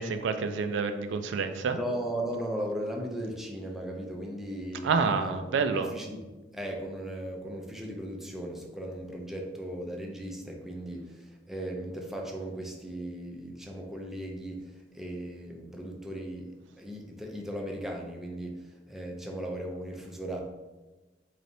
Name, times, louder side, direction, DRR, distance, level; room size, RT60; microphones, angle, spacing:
voice 1, 0.0-1.8 4.8-5.9, right 5 dB, 75° right, 8 dB, 0.3 m, -28 dB
voice 2, 1.7-6.2 6.5-11.2 11.5-14.6 14.9-20.4, right 1 dB, ahead, -1 dB, 0.4 m, -37 dB
3.8 x 3.3 x 2.7 m, 1.1 s
head